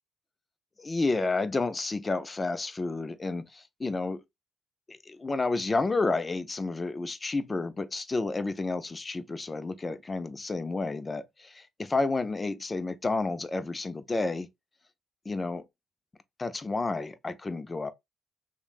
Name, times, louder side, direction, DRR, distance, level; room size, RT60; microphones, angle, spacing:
voice 1, 0.8-4.2 4.9-11.6 11.9-14.5 15.3-15.6 16.4-17.9, left 3 dB, 25° left, 0.4 m, -30 dB
3.1 x 2.1 x 2.3 m
supercardioid pair, 70°, 0 cm